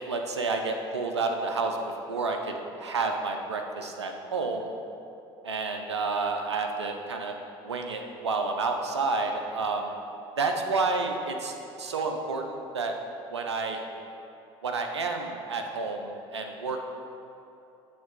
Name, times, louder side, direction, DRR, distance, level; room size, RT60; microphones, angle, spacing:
voice 1, 0.0-1.8 2.1-4.7 5.4-7.4 7.6-9.9 10.4-12.9 13.3-13.8 14.6-16.8, right 3 dB, 90° right, 4 dB, 0.6 m, -30 dB
7.8 x 3.4 x 5.2 m, 2.8 s
hypercardioid pair, 65°, 14 cm